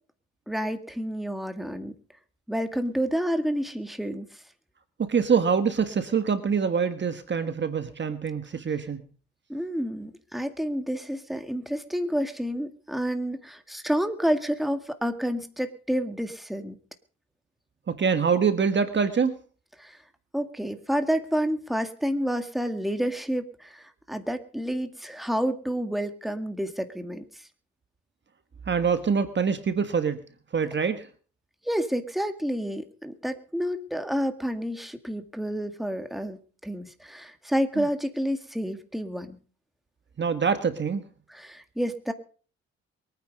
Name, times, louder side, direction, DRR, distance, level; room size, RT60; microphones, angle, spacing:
voice 1, 0.5-1.9 2.5-4.3 9.5-16.8 19.8-20.0 20.3-27.2 31.6-39.4 41.3-42.1, equal, ahead, 7 dB, 2.1 m, -29 dB
voice 2, 5.0-9.0 17.9-19.4 28.7-30.2 30.5-31.1 37.8-37.9 40.2-41.0, right 6 dB, 40° right, 10 dB, 1.5 m, -25 dB
23.0 x 9.6 x 5.3 m, 0.41 s
cardioid pair, 90°, 30 cm